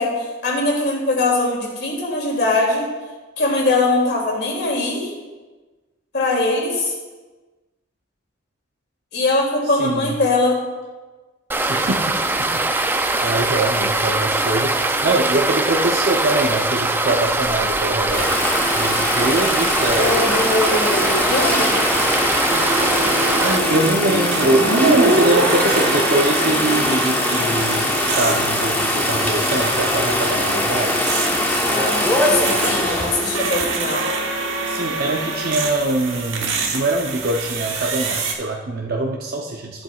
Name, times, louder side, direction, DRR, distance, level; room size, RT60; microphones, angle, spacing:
voice 1, 0.0-2.9 3.4-5.1 6.1-6.9 9.1-10.6 20.0-21.9 31.7-34.1, left 2 dB, 55° left, -2 dB, 2.6 m, -21 dB
voice 2, 9.8-10.2 11.7-18.3 18.7-20.2 23.4-31.0 34.7-39.8, right 2 dB, 50° right, 0 dB, 0.7 m, -23 dB
sound 1, 11.5-23.6, right 2 dB, 10° right, 0.4 m, -21 dB
sound 2, 18.1-34.0, left 1 dB, 10° left, 1.0 m, -22 dB
sound 3, 22.3-38.3, right 3 dB, 90° right, 1.3 m, -26 dB
14.0 x 7.9 x 2.4 m, 1.3 s
head